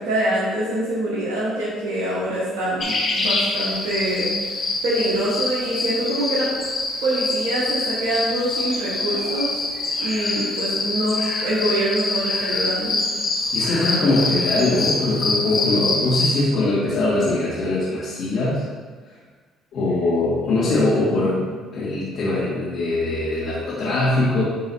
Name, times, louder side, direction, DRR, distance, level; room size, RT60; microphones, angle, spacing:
voice 1, 0.0-4.3 4.8-6.5 7.0-9.5 10.0-13.0 21.1-21.3, right 1 dB, 80° right, -8 dB, 1.4 m, -24 dB
sound 1, 2.8-16.4, left 3 dB, 45° left, 1.9 m, -25 dB
voice 2, 13.5-18.6 19.7-21.5 21.7-24.4, left 2 dB, 65° left, -10 dB, 2.0 m, -21 dB
11.0 x 3.9 x 2.8 m, 1.4 s
hypercardioid pair, 65°, 0 cm